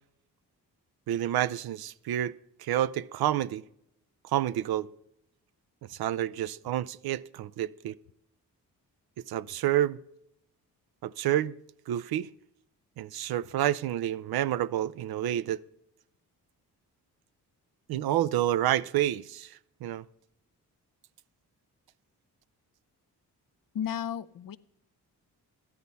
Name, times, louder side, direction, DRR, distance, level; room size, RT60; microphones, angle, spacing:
voice 1, 1.1-3.6 4.2-4.9 5.9-7.9 9.3-10.0 11.0-11.6 11.9-12.3 13.0-15.6 17.9-20.0, right 12 dB, 70° right, 0.5 m, -29 dB
voice 2, 23.7-24.6, left 9 dB, 60° left, 0.6 m, -33 dB
13.5 x 11.0 x 4.1 m
cardioid pair, 65°, 39 cm